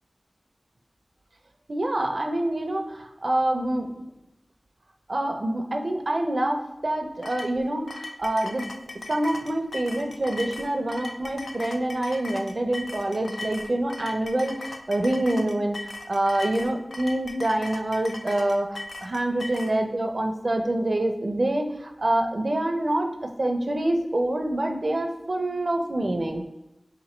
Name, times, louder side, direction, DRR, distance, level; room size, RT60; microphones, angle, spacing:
voice 1, 1.7-3.9 5.1-8.7 9.1-15.8 16.1-23.1 23.4-26.4, right 1 dB, 65° right, 5 dB, 0.5 m, -26 dB
sound 1, 7.2-19.7, left 2 dB, 90° left, 0.3 m, -38 dB
3.0 x 2.7 x 4.2 m, 0.91 s
wide cardioid pair, 40°, 0 cm